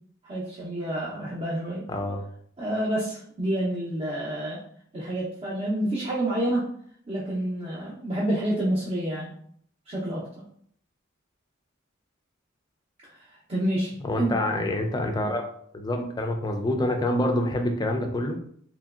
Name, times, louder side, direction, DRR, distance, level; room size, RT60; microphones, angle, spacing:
voice 1, 0.2-1.8 2.6-4.6 4.9-6.6 7.1-9.3 9.9-10.3 13.5-14.3, right 1 dB, 30° right, -7 dB, 0.6 m, -28 dB
voice 2, 14.0-15.4 15.7-18.4, left 1 dB, 20° left, 3 dB, 0.3 m, -26 dB
2.9 x 2.6 x 2.4 m, 0.62 s
head